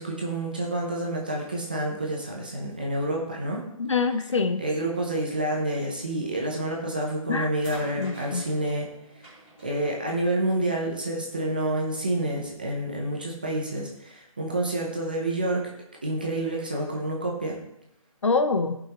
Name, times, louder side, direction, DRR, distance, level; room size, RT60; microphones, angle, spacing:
voice 1, 0.0-3.6 4.6-8.9 9.6-15.7 16.0-17.6, right 1 dB, 15° right, -1 dB, 0.6 m, -28 dB
voice 2, 3.8-4.6 7.3-7.5 8.0-8.4 18.2-18.8, left 4 dB, 60° left, 7 dB, 0.8 m, -25 dB
sound 1, 6.7-7.0 7.6-10.9 11.9-12.0, right 1 dB, 10° left, 3.0 m, -47 dB
15.5 x 5.7 x 2.9 m, 0.82 s
hypercardioid pair, 180°, 18 cm